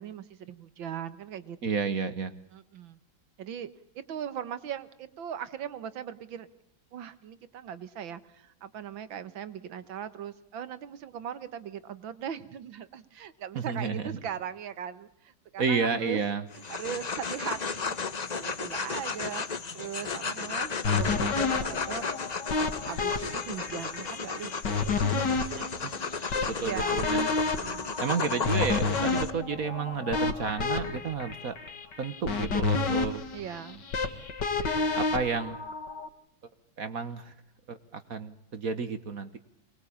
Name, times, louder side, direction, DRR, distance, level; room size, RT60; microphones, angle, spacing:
voice 1, 0.0-1.6 2.5-3.0 3.4-3.7 4.0-6.5 6.9-16.2 16.7-18.0 18.4-19.5 19.7-22.1 22.8-25.4 26.6-27.1 27.4-28.0 33.3-33.9, right 9 dB, 80° right, 14 dB, 2.0 m, -39 dB
voice 2, 1.6-2.3 13.5-14.1 15.6-16.4 25.6-25.9 26.5-27.3 28.0-31.5 32.0-33.2 34.9-35.6 36.8-37.3 37.7-39.4, right 5 dB, 50° right, 11 dB, 1.5 m, -31 dB
sound 1, 16.5-29.3, left 5 dB, 35° left, 0.7 m, -34 dB
sound 2, 20.8-36.1, left 4 dB, 65° left, 2.5 m, -30 dB
24.0 x 21.0 x 8.6 m, 0.80 s
omnidirectional pair, 2.1 m